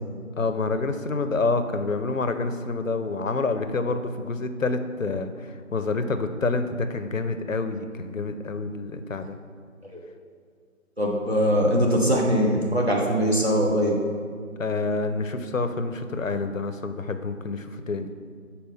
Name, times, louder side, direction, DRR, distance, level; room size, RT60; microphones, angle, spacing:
voice 1, 0.4-9.4 14.6-18.1, left 3 dB, 65° left, 9 dB, 0.6 m, -28 dB
voice 2, 11.0-14.0, equal, 45° right, -2 dB, 0.9 m, -22 dB
5.7 x 4.2 x 5.3 m, 2.1 s
figure-of-eight pair, 175°, 42 cm